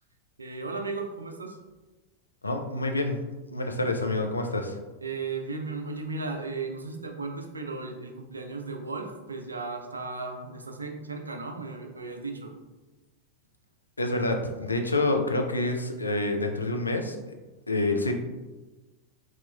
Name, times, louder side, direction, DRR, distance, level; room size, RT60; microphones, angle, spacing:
voice 1, 0.4-1.6 5.0-12.5, right 3 dB, 75° right, 4 dB, 0.4 m, -35 dB
voice 2, 2.4-3.2 3.5-4.8 14.0-17.2 17.7-18.1, left 2 dB, 80° left, 4 dB, 0.4 m, -27 dB
4.2 x 2.8 x 2.2 m, 1.2 s
figure-of-eight pair, 90°, 0 cm